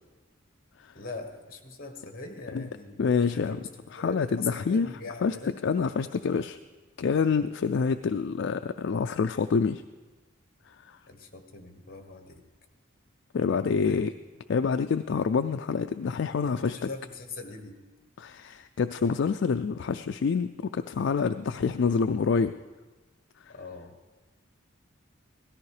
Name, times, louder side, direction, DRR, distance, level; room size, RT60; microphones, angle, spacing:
voice 1, 0.9-5.5 11.1-12.4 13.5-14.0 16.4-17.8 23.5-23.9, left 3 dB, 45° left, 5 dB, 1.5 m, -41 dB
voice 2, 3.0-3.6 3.9-4.9 5.2-5.4 5.6-6.6 7.0-9.8 10.9-11.0 13.3-14.1 14.5-16.9 18.2-22.5, left 5 dB, 60° left, 9 dB, 0.4 m, -27 dB
17.5 x 13.5 x 4.9 m, 1.3 s
head